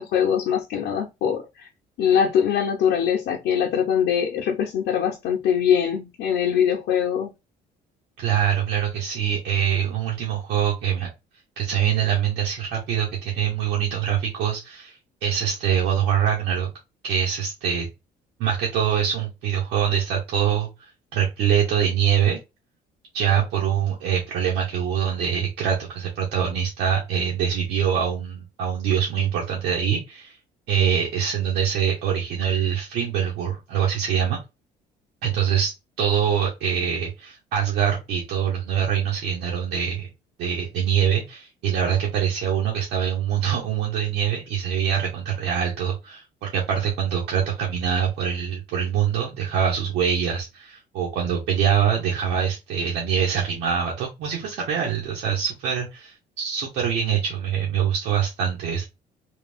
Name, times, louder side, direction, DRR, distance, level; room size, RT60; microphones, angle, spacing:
voice 1, 0.0-1.7 2.0-7.3, left 8 dB, 75° left, 0.6 m, -22 dB
voice 2, 8.2-11.1 11.6-14.9 15.2-16.7 17.0-17.9 18.4-22.4 23.1-30.4 30.7-34.4 35.2-35.7 36.0-40.1 40.4-58.8, right 8 dB, 80° right, 0.9 m, -24 dB
3.1 x 2.3 x 2.3 m
cardioid pair, 110°, 17 cm